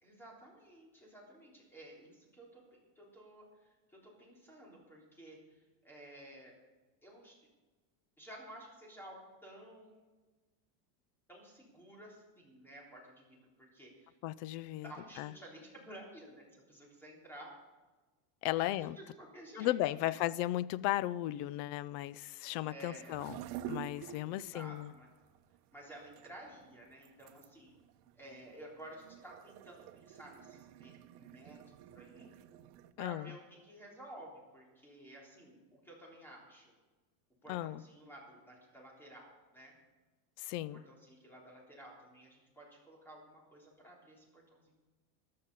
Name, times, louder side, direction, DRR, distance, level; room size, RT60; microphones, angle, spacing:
voice 1, 0.0-6.5 7.0-7.4 8.2-10.0 11.3-14.2 14.8-17.5 18.6-20.2 22.7-23.2 24.2-25.1 25.7-27.7 28.1-31.6 31.9-32.3 33.0-36.7 37.4-39.7 40.7-44.7, right 1 dB, 5° left, 3.6 m, -53 dB
voice 2, 14.2-14.9 15.2-15.3 18.4-19.0 19.6-23.4 23.7-24.9 33.0-33.3 37.5-37.8 40.4-40.8, left 15 dB, 50° left, 0.5 m, -35 dB
sound 1, 22.9-32.9, right 10 dB, 80° right, 1.0 m, -49 dB
14.5 x 11.5 x 5.4 m
cardioid pair, 170°, 44 cm